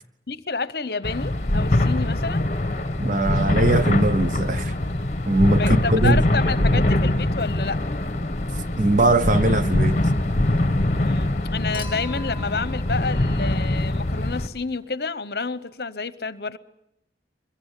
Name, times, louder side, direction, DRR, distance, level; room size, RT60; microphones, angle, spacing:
voice 1, 0.3-2.5 5.5-7.8 10.9-16.6, left 4 dB, 65° left, 0.9 m, -29 dB
sound 1, 1.0-14.5, left 1 dB, 40° left, 1.3 m, -23 dB
voice 2, 3.0-4.7 5.3-6.2 6.6-6.8 8.8-10.0, right 2 dB, 45° right, 0.8 m, -21 dB
Human group actions / Chink clink / Liquid, 11.7-14.1 15.6-15.7, left 1 dB, 30° right, 4.2 m, -43 dB
23.0 x 22.0 x 8.3 m
head